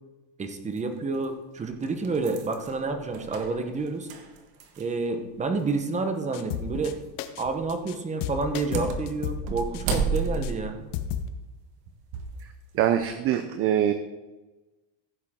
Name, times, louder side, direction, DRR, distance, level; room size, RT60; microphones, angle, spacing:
voice 1, 0.4-4.1 4.8-7.0 7.4-10.8, right 3 dB, 15° right, 6 dB, 1.0 m, -29 dB
sound 1, 0.8-0.9 1.6-5.1 5.4-5.5 6.7-7.0 7.4-7.7 8.4-12.4 12.9-13.1, right 5 dB, 50° right, 1.6 m, -33 dB
sound 2, 6.3-6.9 7.2-7.4 7.7-7.9 8.2-10.0 10.4-10.5 10.9-11.3, left 9 dB, 55° left, 1.0 m, -33 dB
voice 2, 12.7-13.9, right 10 dB, 30° right, 9 dB, 0.5 m, -23 dB
15.5 x 7.4 x 3.7 m, 1.1 s
supercardioid pair, 150°, 49 cm